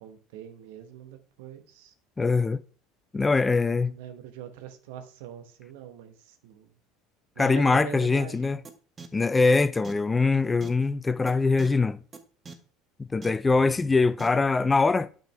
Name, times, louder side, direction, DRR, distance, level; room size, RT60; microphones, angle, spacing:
voice 1, 0.0-1.9 3.3-6.7 7.4-8.6, right 9 dB, 70° right, 1.1 m, -43 dB
voice 2, 2.2-2.6 3.1-3.9 7.4-8.6 9.1-12.0 13.1-15.1, left 3 dB, 20° left, 0.4 m, -23 dB
sound 1, 8.6-8.7 9.0-9.1 9.5-9.6 9.8-9.9 10.6-10.7 11.3-11.4 11.6-11.7 12.1-12.2 12.4-12.5 13.2-13.3 14.2-14.3, right 4 dB, 30° right, 1.1 m, -41 dB
8.9 x 5.1 x 3.4 m
hypercardioid pair, 70°, 0 cm